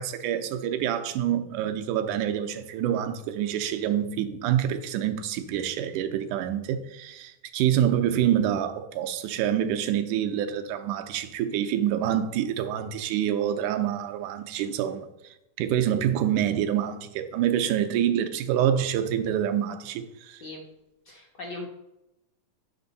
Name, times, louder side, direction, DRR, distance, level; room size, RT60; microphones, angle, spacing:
voice 1, 0.0-15.1 15.6-20.4, right 10 dB, 85° right, 2.1 m, -26 dB
voice 2, 21.0-21.7, left 2 dB, 65° left, 1.0 m, -38 dB
9.6 x 6.1 x 4.0 m
omnidirectional pair, 3.7 m